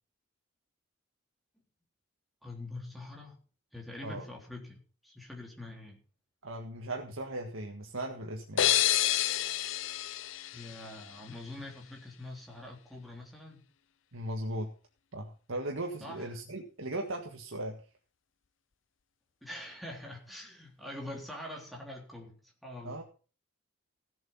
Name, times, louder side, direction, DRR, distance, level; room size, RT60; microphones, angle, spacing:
voice 1, 2.4-3.4 3.7-6.0 10.5-13.6 16.0-16.3 19.4-23.0, left 1 dB, ahead, -1 dB, 3.6 m, -44 dB
voice 2, 6.4-8.8 14.1-14.7 15.1-17.8 22.8-23.0, right 1 dB, 75° right, 2 dB, 1.7 m, -38 dB
sound 1, 8.6-11.3, left 12 dB, 65° left, 0.6 m, -29 dB
16.5 x 7.8 x 5.6 m, 0.37 s
head